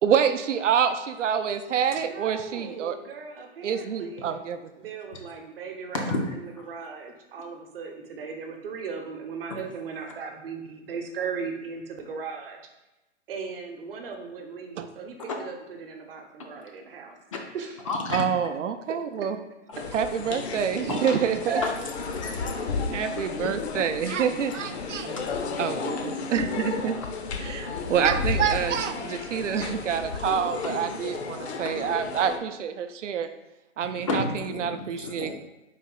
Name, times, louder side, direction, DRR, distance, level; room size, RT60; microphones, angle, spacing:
voice 1, 0.0-3.0 3.6-4.6 14.8-14.9 18.1-19.4 19.9-21.6 22.9-25.2 25.6-27.0 27.4-33.3 33.8-34.2 34.6-35.3, right 8 dB, 85° right, 9 dB, 0.5 m, -27 dB
voice 2, 2.0-4.4 4.8-6.1 6.4-12.6 13.3-17.1 17.5-17.7 18.9-19.0 19.8-19.9 21.1-21.7, right 5 dB, 50° right, 4 dB, 0.8 m, -37 dB
voice 3, 5.9-6.4 9.5-9.6 16.4-16.5 17.3-17.4 17.9-18.3 20.9-21.0 21.6-21.7 22.2-22.6 23.2-23.3 23.8-23.9 24.9-25.6 26.0-26.1 26.9-27.1 30.6-30.7 31.6-31.8 33.9-35.3, left 2 dB, 30° left, 2 dB, 0.4 m, -32 dB
sound 1, 19.7-32.4, left 4 dB, 65° left, 0.7 m, -33 dB
4.1 x 2.7 x 3.9 m, 1.0 s
hypercardioid pair, 150°, 36 cm